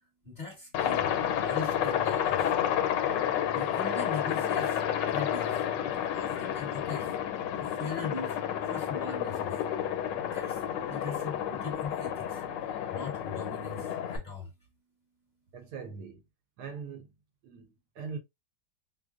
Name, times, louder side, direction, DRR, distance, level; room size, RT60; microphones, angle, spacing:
voice 1, 0.2-1.1 1.4-2.5 3.5-5.7 5.9-8.4 8.6-9.6 10.2-12.4 12.9-14.5, left 4 dB, 25° left, 1.2 m, -41 dB
Aircraft, 0.7-14.2, left 9 dB, 90° left, 1.3 m, -30 dB
voice 2, 15.5-16.2 16.6-17.1 17.4-18.2, right 5 dB, 70° right, 1.1 m, -41 dB
5.1 x 2.0 x 2.4 m
omnidirectional pair, 1.9 m